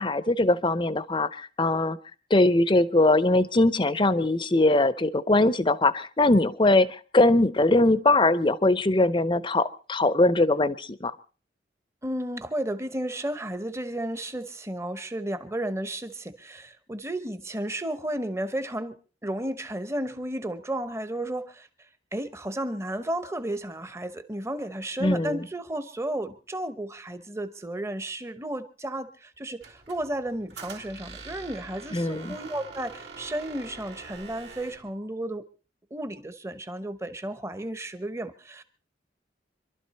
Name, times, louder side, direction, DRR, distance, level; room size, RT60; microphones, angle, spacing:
voice 1, 0.0-2.0 2.3-11.1 25.0-25.4 31.9-32.4, left 2 dB, 25° left, 16 dB, 0.7 m, -21 dB
voice 2, 12.0-19.0 19.2-21.7 22.1-35.5 35.9-38.6, right 1 dB, 15° right, 11 dB, 1.0 m, -33 dB
Squeak, 29.6-34.9, right 4 dB, 70° right, 2.9 m, -44 dB
26.0 x 12.5 x 4.3 m, 0.38 s
head